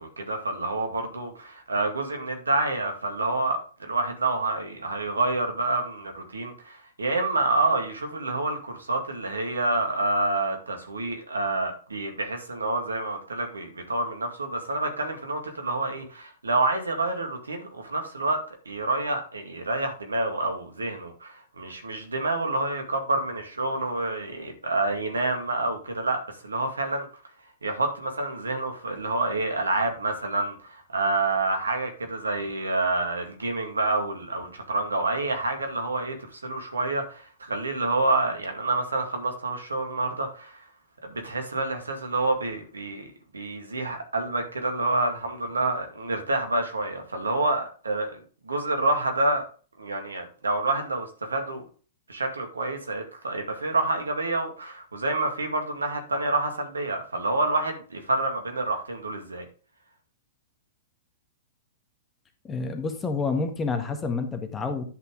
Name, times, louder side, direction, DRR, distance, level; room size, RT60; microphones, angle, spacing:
voice 1, 0.0-27.1 27.6-40.6 41.0-43.1 43.3-48.2 48.5-49.5 49.8-51.6 52.1-59.5, right 2 dB, 80° right, 2.1 m, -28 dB
voice 2, 62.5-64.8, left 4 dB, 20° left, 1.5 m, -28 dB
10.5 x 5.6 x 3.8 m
figure-of-eight pair, 105°, 0 cm